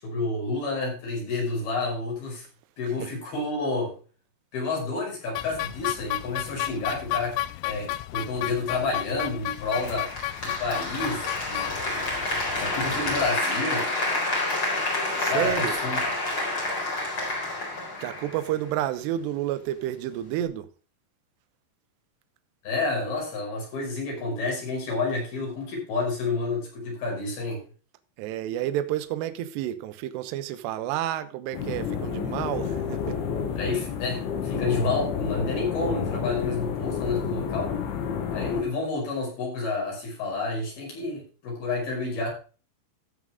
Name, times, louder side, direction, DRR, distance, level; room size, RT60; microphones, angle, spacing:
voice 1, 0.0-2.4 2.8-3.9 4.5-7.4 7.6-10.1 10.4-11.8 12.6-13.9 15.3-16.0 22.6-27.6 33.6-37.7 38.3-42.3, left 3 dB, 50° left, 7.3 m, -29 dB
sound 1, 5.4-13.3, left 16 dB, 85° left, 3.2 m, -33 dB
Applause, 9.8-18.8, left 2 dB, 30° left, 4.2 m, -29 dB
voice 2, 15.2-15.8 17.6-20.7 28.2-33.2, right 12 dB, 75° right, 2.9 m, -30 dB
sound 2, 31.5-38.6, left 7 dB, 70° left, 4.1 m, -30 dB
14.5 x 8.0 x 3.6 m
omnidirectional pair, 5.6 m